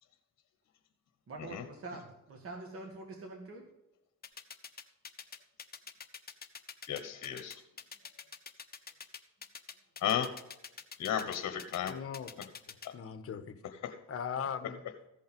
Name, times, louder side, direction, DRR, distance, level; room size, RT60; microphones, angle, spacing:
voice 1, 1.3-3.7, right 3 dB, 45° right, 1 dB, 2.0 m, -45 dB
sound 1, 4.2-12.9, left 6 dB, 30° left, 0.9 m, -46 dB
voice 2, 6.9-7.6 10.0-10.3 11.0-11.9 12.4-12.5 13.8-14.0, left 9 dB, 65° left, 7 dB, 1.2 m, -33 dB
voice 3, 11.9-12.3 12.7-13.6 14.1-14.8, left 7 dB, 50° left, 10 dB, 1.2 m, -39 dB
15.0 x 5.5 x 5.2 m, 0.92 s
cardioid pair, 90°, 30 cm